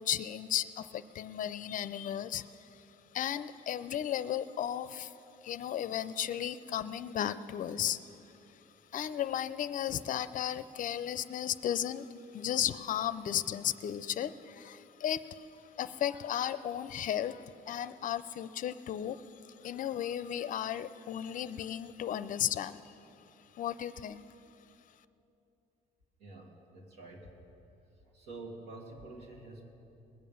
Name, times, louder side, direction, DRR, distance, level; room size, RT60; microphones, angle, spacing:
voice 1, 0.0-2.8 3.1-5.1 5.4-8.0 8.9-12.1 12.3-22.9 23.6-24.2, left 10 dB, 50° left, 14 dB, 0.5 m, -35 dB
voice 2, 26.2-27.3 28.0-29.7, right 2 dB, 85° right, -1 dB, 2.4 m, -48 dB
20.0 x 7.4 x 7.1 m, 2.9 s
cardioid pair, 110°, 17 cm